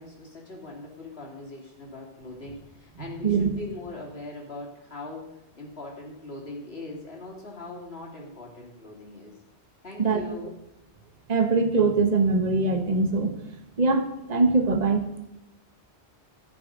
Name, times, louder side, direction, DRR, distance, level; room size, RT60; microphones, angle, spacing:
voice 1, 0.0-9.4 9.8-10.5, left 2 dB, 60° left, -2 dB, 3.3 m, -41 dB
voice 2, 11.3-13.4 13.8-15.0, right 3 dB, 40° right, 6 dB, 1.3 m, -22 dB
15.0 x 6.7 x 5.3 m, 0.91 s
omnidirectional pair, 1.2 m